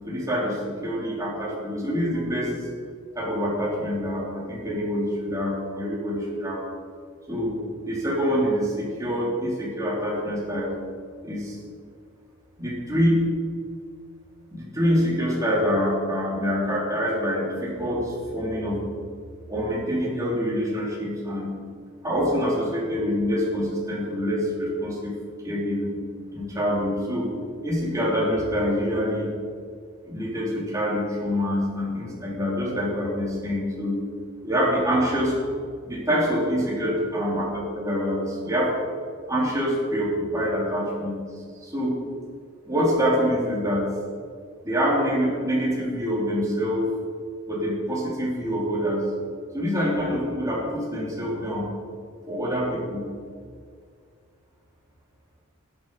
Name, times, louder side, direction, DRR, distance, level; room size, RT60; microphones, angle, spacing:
voice 1, 0.0-2.7 3.1-6.6 7.3-7.6 7.9-10.8 11.2-11.6 12.6-13.2 14.5-18.9 19.5-21.6 22.0-25.2 25.4-26.0 26.3-27.3 27.6-29.3 30.0-34.0 34.4-35.4 35.8-38.7 39.3-41.2 41.6-42.0 42.6-43.9 44.6-46.9 47.5-49.1 49.5-51.8 52.3-53.1, equal, 15° right, -5 dB, 3.5 m, -25 dB
12.5 x 10.0 x 5.5 m, 2.1 s
head